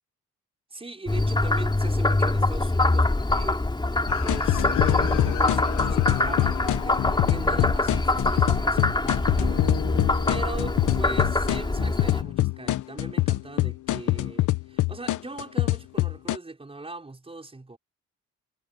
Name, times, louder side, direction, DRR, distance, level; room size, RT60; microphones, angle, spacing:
voice 1, 0.7-3.9 4.2-17.8, right 2 dB, 20° right, 6.4 m, -40 dB
Frog, 1.1-12.2, left 2 dB, 15° left, 4.4 m, -24 dB
sound 1, 4.1-16.4, left 15 dB, 80° left, 1.2 m, -25 dB
cardioid pair, 90°, 30 cm